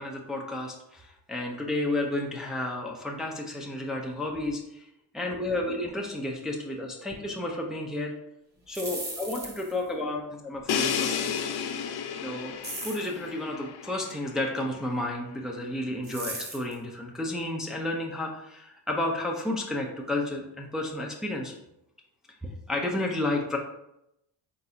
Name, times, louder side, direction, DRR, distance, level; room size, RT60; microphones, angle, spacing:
voice 1, 0.0-4.9 5.1-8.1 8.7-11.3 12.2-12.5 12.8-21.5 22.4-23.6, left 1 dB, ahead, 0 dB, 0.6 m, -32 dB
sound 1, 8.6-9.8 12.6-13.1 16.0-16.7, right 2 dB, 20° right, 1.4 m, -37 dB
Crash cymbal, 10.7-14.5, left 7 dB, 55° left, 0.6 m, -32 dB
4.0 x 4.0 x 2.8 m, 0.83 s
cardioid pair, 80°, 46 cm